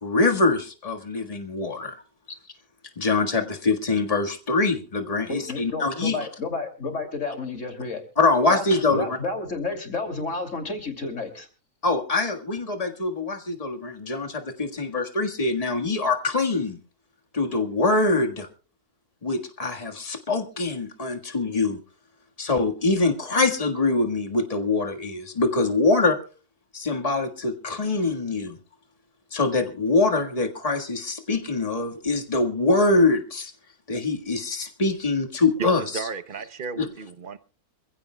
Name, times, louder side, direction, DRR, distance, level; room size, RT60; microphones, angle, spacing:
voice 1, 0.0-2.0 3.0-6.2 8.2-9.0 11.8-16.8 17.3-18.5 19.2-21.8 22.4-26.2 26.7-28.6 29.3-33.5 33.9-36.0 36.8-36.9, left 3 dB, 25° left, 1.7 m, -24 dB
voice 2, 5.3-8.0 8.5-8.7 8.9-11.5, left 3 dB, 50° left, 3.1 m, -31 dB
voice 3, 35.6-37.4, right 6 dB, 40° right, 0.9 m, -33 dB
26.5 x 15.5 x 2.3 m
omnidirectional pair, 1.6 m